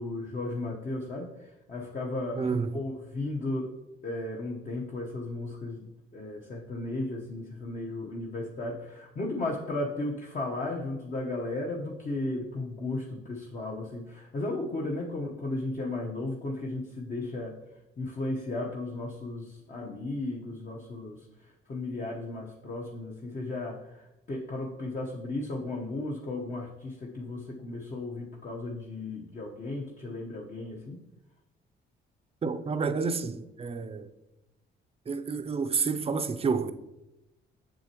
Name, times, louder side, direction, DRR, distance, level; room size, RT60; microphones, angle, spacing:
voice 1, 0.0-3.7 4.0-17.6 18.0-31.0, left 2 dB, 40° left, 1.1 m, -35 dB
voice 2, 2.4-2.8 32.4-34.1 35.1-36.7, right 5 dB, 30° right, 0.5 m, -29 dB
7.5 x 6.8 x 3.0 m
cardioid pair, 90°, 20 cm